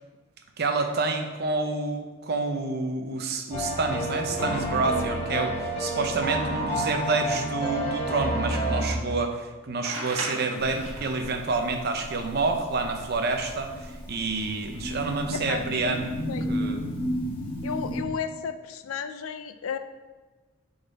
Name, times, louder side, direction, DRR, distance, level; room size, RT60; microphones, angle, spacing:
voice 1, 0.6-16.1 16.5-16.9, right 3 dB, 50° right, 5 dB, 0.6 m, -28 dB
sound 1, 3.5-8.9, right 1 dB, 30° left, 1.9 m, -29 dB
sound 2, 9.8-11.3 13.3-13.4 14.5-14.9, right 2 dB, 70° right, 1.2 m, -36 dB
sound 3, 10.6-18.0, equal, 50° left, 1.6 m, -34 dB
voice 2, 17.6-19.8, left 7 dB, 80° left, 10 dB, 0.4 m, -33 dB
6.7 x 4.0 x 4.0 m, 1.2 s
head